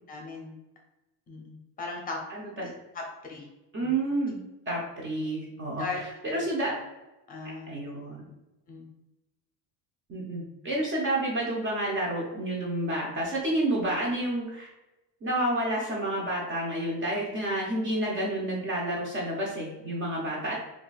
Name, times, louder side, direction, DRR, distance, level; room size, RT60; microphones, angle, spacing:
voice 1, 0.1-0.5 1.3-2.2 2.9-3.5 3.8-3.9 5.8-6.0 6.3-6.4 7.3-7.7 8.7-8.9, left 3 dB, 20° left, 0 dB, 0.7 m, -37 dB
voice 2, 2.3-2.7 3.7-5.9 6.3-6.8 7.7-8.2 10.1-14.7 15.2-20.5, right 1 dB, 30° right, -3 dB, 0.6 m, -30 dB
2.7 x 2.4 x 3.9 m, 1.0 s
cardioid pair, 170°, 42 cm